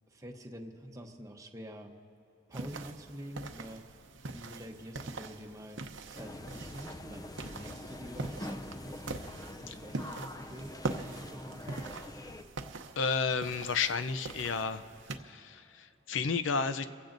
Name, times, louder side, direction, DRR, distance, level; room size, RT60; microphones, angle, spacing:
voice 1, 0.1-1.9 2.5-3.8 4.3-7.2 7.5-9.0 9.5-12.0, equal, 15° right, 2 dB, 0.9 m, -47 dB
sound 1, 2.5-15.2, right 3 dB, 80° right, 0.8 m, -43 dB
sound 2, 6.2-12.4, left 1 dB, 20° left, 0.5 m, -45 dB
voice 2, 13.0-14.8 15.2-16.9, left 5 dB, 80° left, 11 dB, 0.6 m, -32 dB
29.5 x 16.0 x 2.6 m, 2.8 s
head